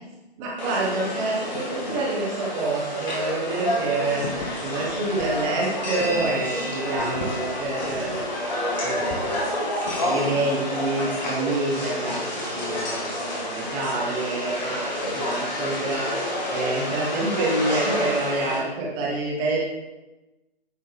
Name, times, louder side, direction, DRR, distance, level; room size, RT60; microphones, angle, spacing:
voice 1, 0.4-9.7 10.0-19.6, right 2 dB, 15° right, -3 dB, 1.0 m, -28 dB
sound 1, 0.6-18.6, left 1 dB, 45° left, 2.1 m, -29 dB
sound 2, 4.2-6.6 6.9-10.0, left 2 dB, 30° left, 1.0 m, -38 dB
9.7 x 4.4 x 3.2 m, 1.1 s
figure-of-eight pair, 145°, 31 cm